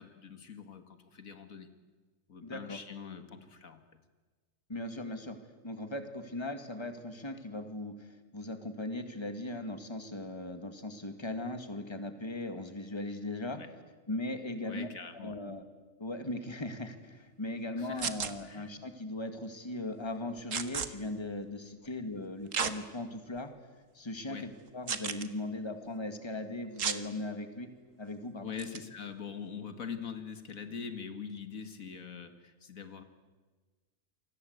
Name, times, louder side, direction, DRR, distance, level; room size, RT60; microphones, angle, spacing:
voice 1, 0.0-1.7 2.3-3.8 13.5-13.7 14.6-15.4 17.8-18.2 18.4-18.7 24.3-24.5 28.4-33.0, left 6 dB, 75° left, 8 dB, 2.1 m, -43 dB
voice 2, 2.4-2.8 4.7-5.4 5.6-13.6 14.1-14.9 15.1-15.6 16.0-23.5 23.9-27.7 28.0-28.5, left 2 dB, 20° left, 8 dB, 2.1 m, -38 dB
sound 1, 18.0-18.3 20.5-20.9 22.5-22.7 23.4-23.5 24.9-25.3 26.8-27.0 28.6-28.8, right 6 dB, 65° right, 1.7 m, -32 dB
28.5 x 24.5 x 8.1 m, 1.4 s
omnidirectional pair, 1.5 m